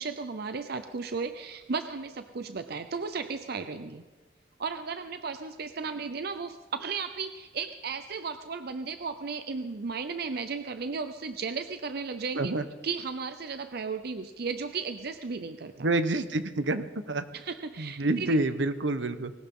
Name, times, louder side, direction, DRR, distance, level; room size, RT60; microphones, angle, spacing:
voice 1, 0.0-4.0 4.6-12.5 12.8-15.9 17.3-18.4, right 5 dB, 60° right, 9 dB, 0.6 m, -35 dB
voice 2, 15.8-17.2 17.8-19.3, right 2 dB, 80° right, 11 dB, 1.0 m, -28 dB
20.0 x 18.5 x 3.8 m, 1.3 s
head